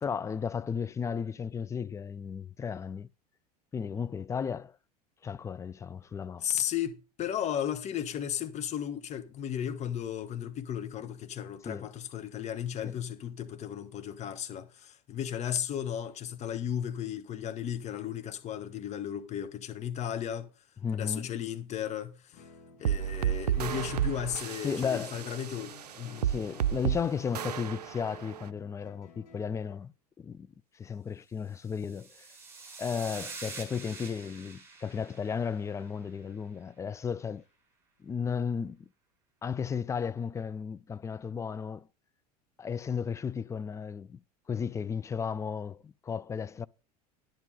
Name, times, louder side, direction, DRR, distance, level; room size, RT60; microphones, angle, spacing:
voice 1, 0.0-3.1 3.7-4.8 5.2-6.5 11.6-11.9 12.8-13.0 20.8-21.3 24.6-25.2 26.2-32.3 32.8-37.4 38.0-38.9 39.4-41.9 42.6-44.2 44.5-46.7, left 6 dB, 15° left, 0.4 m, -34 dB
voice 2, 6.4-20.5 20.9-22.4 22.8-26.3, left 9 dB, 35° left, 1.2 m, -35 dB
Guitar, 22.3-29.8, left 7 dB, 50° left, 6.7 m, -53 dB
sound 1, 22.9-28.5, right 10 dB, 70° right, 0.5 m, -32 dB
sound 2, 31.6-36.1, right 4 dB, 10° right, 5.9 m, -46 dB
10.5 x 9.7 x 3.8 m
figure-of-eight pair, 80°, 21 cm